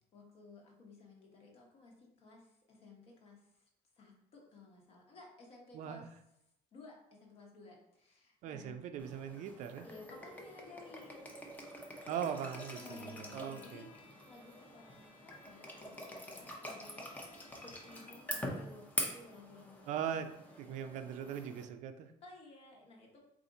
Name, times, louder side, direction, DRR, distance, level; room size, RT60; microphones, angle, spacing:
voice 1, 0.1-3.7 3.9-6.2 6.7-8.8 9.8-11.5 12.7-17.2 17.6-20.6 21.4-21.7 22.2-23.2, left 3 dB, 45° left, 0 dB, 0.9 m, -56 dB
voice 2, 5.7-6.0 8.4-9.9 12.1-13.9 19.9-20.3 20.6-22.1, right 8 dB, 65° right, 8 dB, 0.4 m, -40 dB
sound 1, 9.0-21.6, left 1 dB, 10° left, 0.6 m, -45 dB
Bowed string instrument, 12.0-18.3, left 3 dB, 80° left, 1.0 m, -61 dB
4.2 x 2.5 x 3.8 m, 0.79 s
cardioid pair, 160°, 14 cm